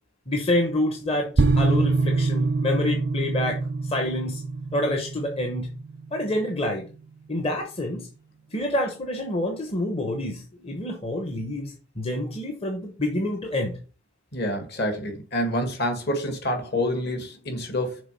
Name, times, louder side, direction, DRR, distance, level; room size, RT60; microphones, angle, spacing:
voice 1, 0.3-4.4 4.7-5.7 6.1-6.9 7.3-8.1 8.5-13.8, left 1 dB, 30° left, 0.9 m, -27 dB
sound 1, 1.4-6.6, right 3 dB, 55° right, 0.6 m, -25 dB
voice 2, 14.3-18.0, left 1 dB, 50° left, 1.8 m, -27 dB
6.6 x 4.1 x 5.3 m
head